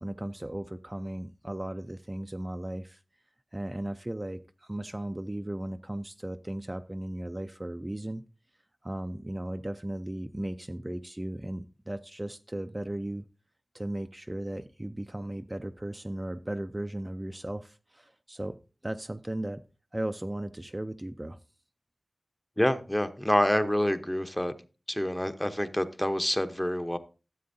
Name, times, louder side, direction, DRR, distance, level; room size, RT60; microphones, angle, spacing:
voice 1, 0.0-3.0 3.5-8.2 8.8-13.3 13.7-19.6 19.9-21.4, right 1 dB, 25° right, 8 dB, 0.4 m, -36 dB
voice 2, 22.6-24.5 24.9-27.0, left 1 dB, 15° left, 9 dB, 0.8 m, -27 dB
13.0 x 7.7 x 2.6 m, 0.33 s
wide cardioid pair, 50°, 0 cm